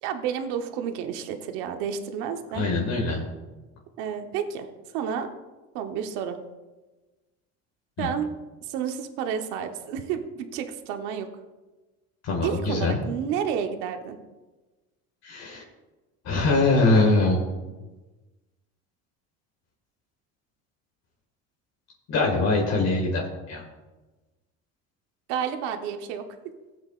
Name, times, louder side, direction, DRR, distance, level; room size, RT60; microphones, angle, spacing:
voice 1, 0.0-2.7 4.0-4.7 4.9-5.3 5.7-6.4 8.0-8.3 8.6-11.3 12.4-14.2 25.3-26.5, right 8 dB, 85° right, 6 dB, 1.0 m, -30 dB
voice 2, 2.5-3.2 8.0-8.1 12.2-13.0 15.2-15.6 16.2-17.4 22.1-23.2 23.5-23.6, left 2 dB, 50° left, -1 dB, 1.9 m, -22 dB
16.0 x 8.0 x 2.4 m, 1.2 s
cardioid pair, 115°, 33 cm